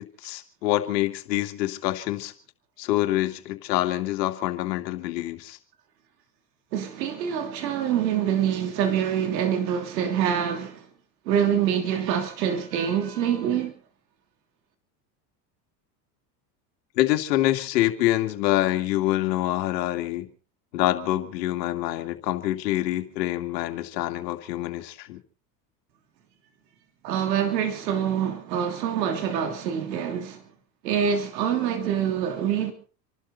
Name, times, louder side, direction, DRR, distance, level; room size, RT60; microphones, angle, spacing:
voice 1, 0.0-2.3 2.8-5.6 17.0-20.3 20.7-25.2, left 15 dB, 75° left, 2.6 m, -26 dB
voice 2, 6.7-10.8 11.3-13.7 27.0-30.4 30.8-32.7, right 8 dB, 80° right, 3.1 m, -25 dB
28.5 x 12.5 x 4.1 m
hypercardioid pair, 95°, 49 cm